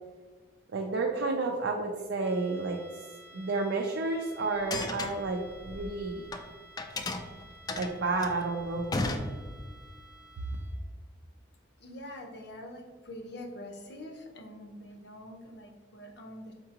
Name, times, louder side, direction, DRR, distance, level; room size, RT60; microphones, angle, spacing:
voice 1, 0.7-3.1 3.3-6.4 7.7-9.0, right 3 dB, 75° right, 1 dB, 0.4 m, -31 dB
sound 1, 2.2-10.9, right 1 dB, 10° right, 0.8 m, -54 dB
sound 2, 4.6-6.4 6.8-9.8, left 2 dB, 20° left, 0.3 m, -35 dB
voice 2, 11.8-16.5, left 1 dB, 65° left, 4 dB, 0.7 m, -45 dB
4.4 x 3.7 x 2.8 m, 1.4 s
head